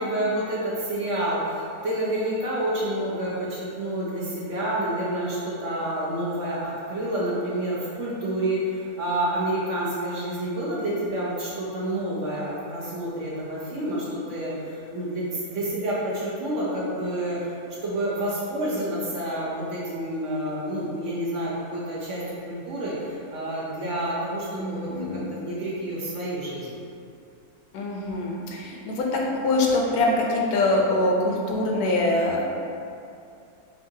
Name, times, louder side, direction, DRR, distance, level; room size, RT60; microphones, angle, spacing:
voice 1, 0.0-17.5 17.8-26.8, right 1 dB, 60° right, -6 dB, 0.9 m, -29 dB
voice 2, 24.5-25.3 27.7-32.5, left 2 dB, 75° left, -1 dB, 1.1 m, -24 dB
5.5 x 2.4 x 2.7 m, 2.5 s
omnidirectional pair, 1.7 m